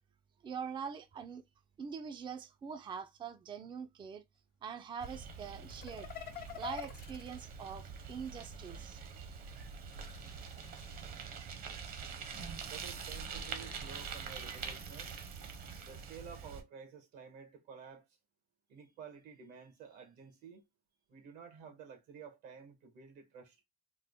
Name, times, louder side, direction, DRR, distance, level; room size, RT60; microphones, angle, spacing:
voice 1, 0.4-1.4 1.8-4.2 4.6-6.1 6.6-9.0, right 6 dB, 30° right, 0.4 m, -43 dB
Bicycle, 5.0-16.6, right 6 dB, 60° right, 0.9 m, -45 dB
sound 1, 5.7-8.5 9.7-11.3 11.8-16.1, left 11 dB, 60° left, 0.6 m, -51 dB
voice 2, 12.7-15.2 15.8-18.0 18.7-20.6 21.1-23.6, right 6 dB, 90° right, 1.3 m, -52 dB
3.6 x 2.1 x 3.5 m
cardioid pair, 110°, 17 cm